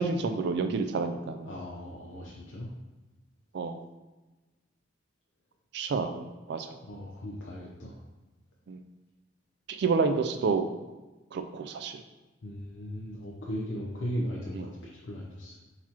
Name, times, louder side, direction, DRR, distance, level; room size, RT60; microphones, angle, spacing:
voice 1, 0.0-1.5 3.5-3.8 5.7-6.7 8.7-8.8 9.7-10.7 11.3-12.0 14.5-14.6, right 4 dB, 65° right, 7 dB, 0.3 m, -29 dB
voice 2, 1.5-2.7 6.8-8.0 12.4-15.5, equal, 75° left, -4 dB, 0.6 m, -37 dB
4.0 x 2.9 x 4.3 m, 1.1 s
head